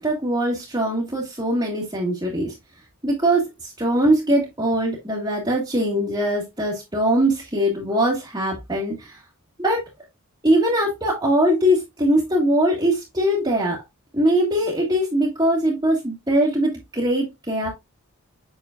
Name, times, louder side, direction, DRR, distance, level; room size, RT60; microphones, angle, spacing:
voice 1, 0.0-2.5 3.0-9.2 9.6-9.8 10.4-13.8 14.1-17.7, right 1 dB, 20° right, -5 dB, 1.8 m, -21 dB
8.1 x 6.0 x 2.4 m, 0.20 s
head